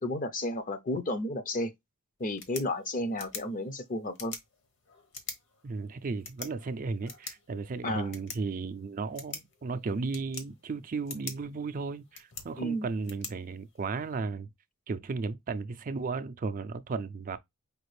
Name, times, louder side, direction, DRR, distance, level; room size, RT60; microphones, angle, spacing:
voice 1, 0.0-1.7 2.2-4.4 7.8-8.1 12.6-12.9, left 1 dB, 40° left, 0.7 m, -32 dB
sound 1, 2.2-14.2, left 4 dB, 55° left, 1.2 m, -46 dB
voice 2, 5.6-14.5 14.9-17.4, right 4 dB, 40° right, 0.4 m, -35 dB
5.1 x 2.4 x 3.1 m
head